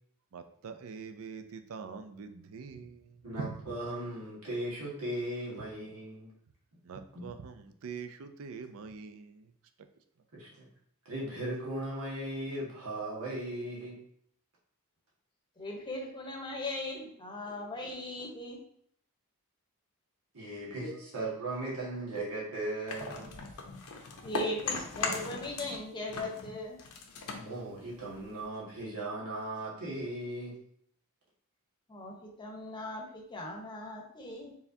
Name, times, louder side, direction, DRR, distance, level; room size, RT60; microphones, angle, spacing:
voice 1, 0.3-3.7 6.8-9.5, right 5 dB, 70° right, 8 dB, 0.4 m, -44 dB
voice 2, 3.2-6.3 7.1-7.2 10.3-10.7 11.1-14.0 20.3-23.4 27.4-30.5, right 1 dB, 85° right, -5 dB, 1.6 m, -37 dB
voice 3, 15.6-18.6 24.2-26.8 31.9-34.5, left 1 dB, 20° left, 0 dB, 0.8 m, -39 dB
sound 1, 22.9-25.8 26.1-28.5, left 4 dB, 75° left, 0.7 m, -38 dB
4.6 x 3.4 x 2.7 m, 0.65 s
head